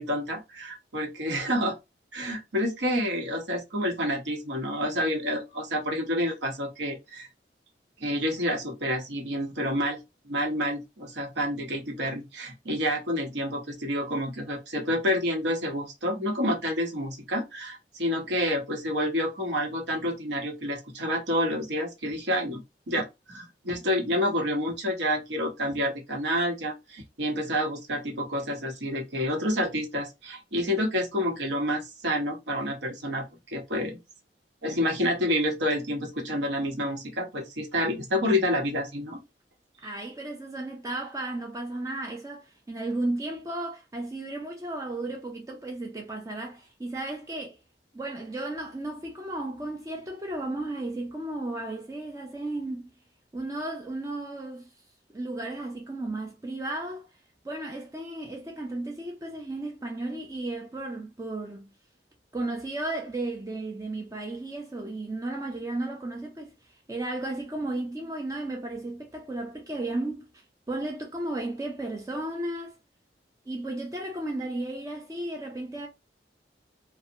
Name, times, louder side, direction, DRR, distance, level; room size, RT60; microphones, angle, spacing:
voice 1, 0.0-1.8 2.1-7.3 8.0-10.0 10.3-34.0 34.6-39.2, equal, 80° right, 0.8 m, -29 dB
voice 2, 39.8-47.6 47.9-52.9 53.3-54.7 55.1-57.1 57.4-61.7 62.3-66.5 66.9-70.3 70.7-72.7 73.5-75.9, right 2 dB, 20° right, 0.4 m, -34 dB
2.6 x 2.1 x 2.6 m
head